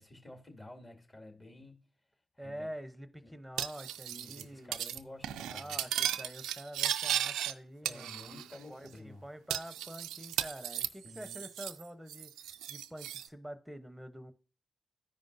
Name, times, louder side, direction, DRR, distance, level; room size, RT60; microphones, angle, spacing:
voice 1, 0.0-1.8 2.3-2.7 3.2-3.3 4.0-5.8 7.8-9.2 11.0-11.4, left 1 dB, 35° left, 2.3 m, -51 dB
voice 2, 2.4-4.8 5.5-14.3, equal, 5° right, 0.9 m, -47 dB
Cutlery silverware, 3.6-4.4 4.7-5.0 5.2-7.5 7.9-8.6 8.9-9.0 9.5-11.8 12.1-13.3, right 11 dB, 85° right, 0.3 m, -36 dB
13.5 x 5.1 x 2.6 m
supercardioid pair, 45°, 0 cm